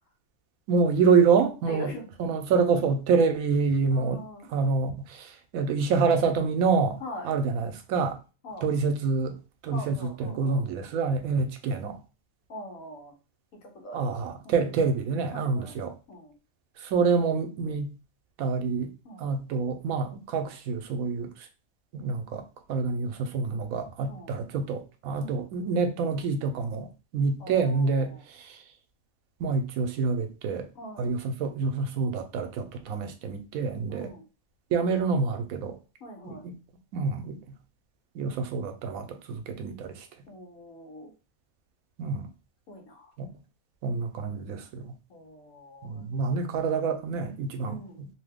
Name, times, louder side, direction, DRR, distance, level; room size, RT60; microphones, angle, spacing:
voice 1, 0.7-1.9 2.2-4.2 4.5-7.0 7.2-8.2 8.6-9.3 9.6-12.0 13.9-15.9 16.8-17.9 18.4-18.9 19.2-21.3 21.9-22.4 22.7-28.6 29.4-30.7 31.0-34.1 34.7-35.8 36.2-36.4 36.9-37.4 38.1-40.1 42.0-42.3 43.2-43.3 43.8-44.9 45.8-48.1, right 5 dB, 85° right, 1.0 m, -27 dB
voice 2, 1.7-2.1 3.9-4.5 7.0-7.3 8.4-8.7 9.7-10.7 12.5-13.1 13.8-14.1 14.4-14.5 15.3-15.8 16.1-16.3 19.0-19.3 24.1-24.3 25.2-25.5 27.4-28.2 30.7-31.1 33.9-34.2 36.0-36.4 40.3-41.1 42.7-43.1 45.1-46.0 46.4-46.5 47.6-48.0, left 1 dB, 80° left, 1.3 m, -42 dB
2.9 x 2.2 x 3.4 m
omnidirectional pair, 1.4 m